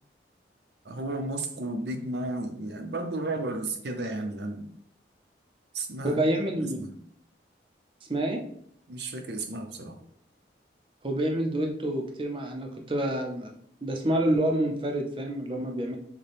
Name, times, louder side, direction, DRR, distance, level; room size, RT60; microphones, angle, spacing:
voice 1, 0.8-4.7 5.7-6.9 8.9-10.0, right 2 dB, 65° right, 5 dB, 0.7 m, -33 dB
voice 2, 6.0-6.8 8.1-8.5 11.0-13.5 13.8-16.0, right 1 dB, 30° right, 3 dB, 0.6 m, -28 dB
6.5 x 2.2 x 3.4 m, 0.66 s
head